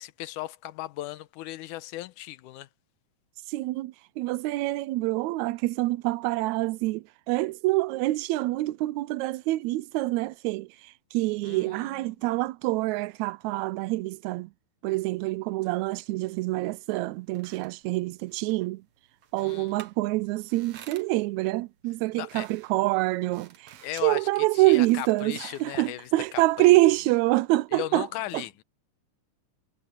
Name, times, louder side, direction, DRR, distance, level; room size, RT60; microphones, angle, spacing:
voice 1, 0.0-2.7 11.4-12.2 19.4-19.7 22.1-22.5 23.8-26.9 27.7-28.6, left 15 dB, 80° left, 2.0 m, -37 dB
voice 2, 3.5-14.5 14.8-18.8 19.3-28.1 28.3-28.4, right 19 dB, 85° right, 1.6 m, -26 dB
sound 1, 17.0-26.7, right 9 dB, 60° right, 1.9 m, -54 dB
omnidirectional pair, 3.8 m